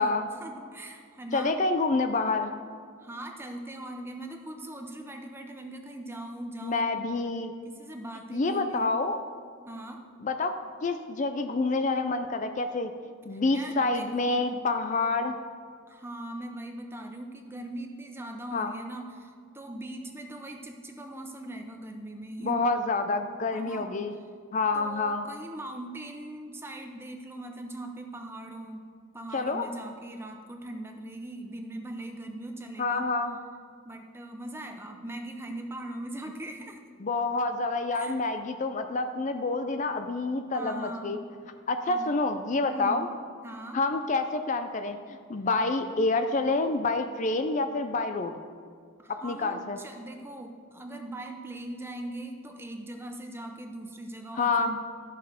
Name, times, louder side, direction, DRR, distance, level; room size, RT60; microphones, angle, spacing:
voice 1, 0.4-1.6 3.0-6.8 7.7-8.9 9.7-10.0 13.3-14.6 15.9-22.6 23.5-23.9 24.7-28.9 29.1-33.1 33.8-36.8 37.9-38.2 40.5-41.2 41.9-42.2 42.6-43.0 43.4-43.8 49.0-54.8, right 1 dB, 10° right, 4 dB, 0.7 m, -40 dB
voice 2, 1.3-2.5 6.6-7.5 8.3-9.2 10.2-10.6 10.8-12.9 13.3-15.3 18.5-18.7 22.4-24.1 24.5-25.3 29.3-29.7 32.8-33.4 37.0-41.2 41.7-43.1 43.7-48.4 49.2-49.8 54.4-54.8, left 3 dB, 35° left, 7 dB, 0.4 m, -28 dB
13.5 x 6.6 x 5.1 m, 2.1 s
head